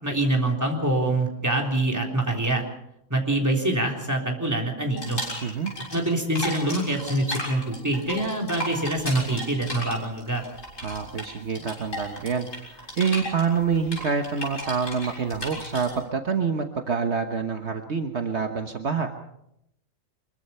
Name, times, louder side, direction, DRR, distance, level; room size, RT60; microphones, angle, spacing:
voice 1, 0.0-2.6 3.1-5.2 5.9-10.5, right 1 dB, 15° right, 1 dB, 3.7 m, -25 dB
sound 1, 5.0-6.1 6.4-15.9, equal, 75° left, 7.1 m, -35 dB
voice 2, 5.4-5.7 10.8-19.1, right 6 dB, 60° right, 5 dB, 1.5 m, -27 dB
25.0 x 22.5 x 5.6 m, 0.78 s
omnidirectional pair, 1.3 m